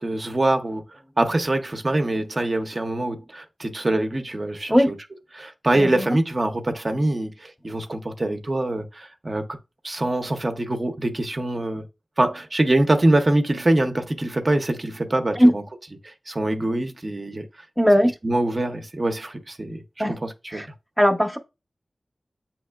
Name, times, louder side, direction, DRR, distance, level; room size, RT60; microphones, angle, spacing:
voice 1, 0.0-4.9 5.3-9.4 9.8-11.8 12.2-15.6 16.0-17.5 18.2-19.8 20.2-20.6, right 1 dB, 40° right, 0.5 m, -24 dB
voice 2, 5.7-6.2 15.4-15.5 17.8-18.1 20.0-20.2 20.5-20.7 21.0-21.4, equal, 5° left, 0.6 m, -18 dB
7.8 x 2.9 x 2.2 m
wide cardioid pair, 90°, 0 cm